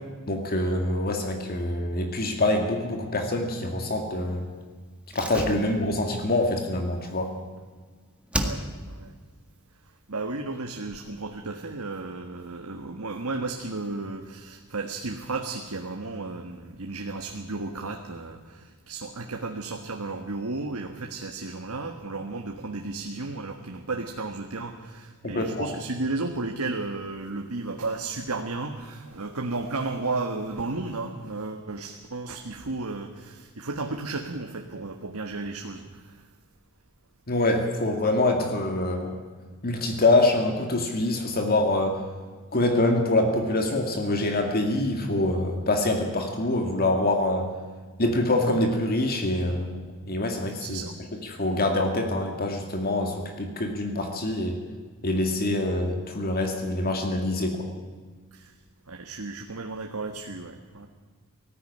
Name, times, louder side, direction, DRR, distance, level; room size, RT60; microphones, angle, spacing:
voice 1, 0.3-4.5 5.1-7.3 25.2-25.7 37.3-39.2 39.6-42.0 42.5-47.5 48.0-50.8 51.3-54.6 55.0-57.7, left 2 dB, 45° left, 4 dB, 2.1 m, -25 dB
Slam, 5.1-7.8 8.3-9.1 9.3-9.4, right 1 dB, 5° right, 1.7 m, -34 dB
voice 2, 8.4-9.2 10.1-36.3 50.6-51.0 58.3-58.5 58.9-60.9, right 3 dB, 80° right, 3 dB, 1.6 m, -33 dB
19.0 x 14.5 x 10.0 m, 1.5 s
head